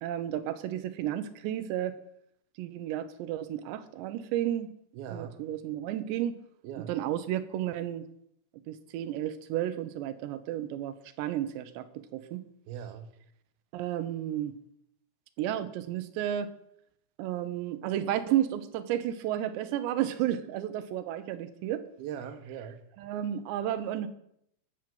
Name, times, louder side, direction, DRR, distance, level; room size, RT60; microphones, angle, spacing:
voice 1, 0.0-2.0 2.6-4.7 5.1-6.4 6.8-8.0 8.7-12.4 13.7-14.6 15.4-16.5 17.2-21.9 23.0-24.1, right 11 dB, 90° right, 3.1 m, -32 dB
voice 2, 5.0-5.4 6.6-7.0 12.7-13.1 22.0-22.8, right 8 dB, 75° right, 2.6 m, -40 dB
13.5 x 6.0 x 7.7 m
omnidirectional pair, 4.9 m